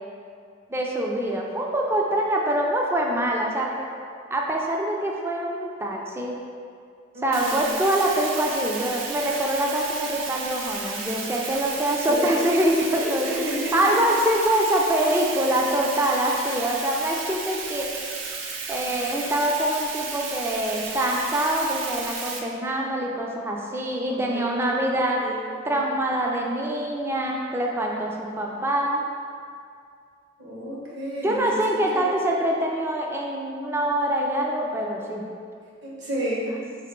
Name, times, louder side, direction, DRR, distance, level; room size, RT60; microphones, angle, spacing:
voice 1, 0.7-3.9 4.3-6.3 7.2-13.3 13.7-17.9 18.7-25.2 25.6-29.0 31.2-35.2, right 1 dB, 15° right, -1 dB, 0.3 m, -24 dB
voice 2, 7.1-7.7 12.1-12.2 13.0-13.9 24.1-25.9 30.4-31.6 31.9-32.1 35.8-36.6, equal, 60° right, -6 dB, 1.2 m, -32 dB
Bathtub (filling or washing), 7.3-22.4, right 4 dB, 90° right, 0.5 m, -33 dB
4.7 x 3.0 x 3.6 m, 2.3 s
head